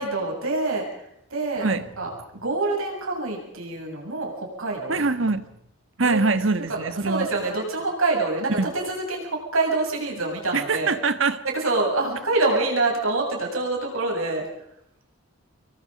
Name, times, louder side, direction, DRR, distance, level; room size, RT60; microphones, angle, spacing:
voice 1, 0.0-5.0 6.0-6.8 7.0-10.9 11.4-14.4, right 2 dB, 85° right, 0 dB, 7.8 m, -26 dB
voice 2, 4.9-5.5 6.0-7.3 8.6-8.7 10.5-11.4, right 3 dB, 70° right, 11 dB, 1.5 m, -23 dB
28.5 x 22.5 x 5.3 m, 0.79 s
head